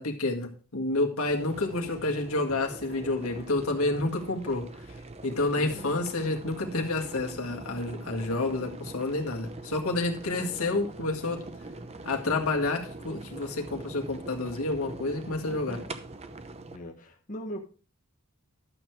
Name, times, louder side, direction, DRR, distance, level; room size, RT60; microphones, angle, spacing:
voice 1, 0.0-4.7 5.2-11.5 12.0-15.8, left 2 dB, 85° left, 1.9 m, -29 dB
sound 1, 1.3-16.8, right 2 dB, 30° right, 0.8 m, -43 dB
voice 2, 5.5-5.9 15.4-15.9 16.7-17.6, equal, 35° left, 1.3 m, -41 dB
12.0 x 6.9 x 4.6 m
head